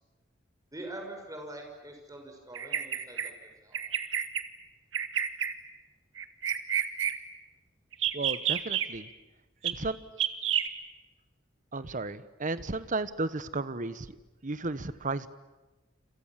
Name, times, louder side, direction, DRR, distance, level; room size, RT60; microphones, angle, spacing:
voice 1, 0.7-3.8, right 1 dB, 20° right, 3 dB, 6.3 m, -44 dB
Bird vocalization bird call bird song, 2.5-3.3 3.7-4.4 4.9-5.5 6.2-7.2 7.9-8.9 9.6-9.7 10.2-10.7, right 9 dB, 75° right, 1.8 m, -29 dB
voice 2, 8.1-9.1 9.6-10.0 11.7-14.2 14.4-15.3, right 3 dB, 45° right, 14 dB, 1.1 m, -34 dB
28.0 x 27.5 x 7.5 m, 1.1 s
head